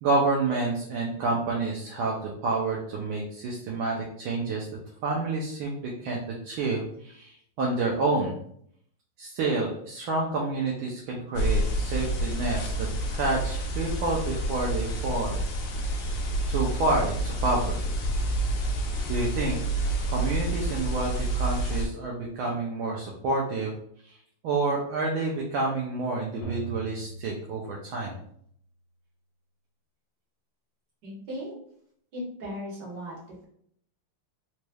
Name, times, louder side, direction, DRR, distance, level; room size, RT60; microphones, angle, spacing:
voice 1, 0.0-4.7 5.0-8.3 9.2-12.9 13.1-15.4 16.5-17.9 19.1-23.7 24.0-24.2 24.4-28.2, right 3 dB, 75° right, -2 dB, 1.4 m, -29 dB
sound 1, 11.4-21.9, right 1 dB, 70° left, 1.3 m, -28 dB
sound 2, 26.4-28.4, right 5 dB, 90° left, 1.5 m, -40 dB
voice 2, 31.0-31.6 32.1-33.1, equal, 55° right, -5 dB, 1.9 m, -36 dB
4.1 x 3.2 x 2.2 m, 0.67 s
omnidirectional pair, 2.3 m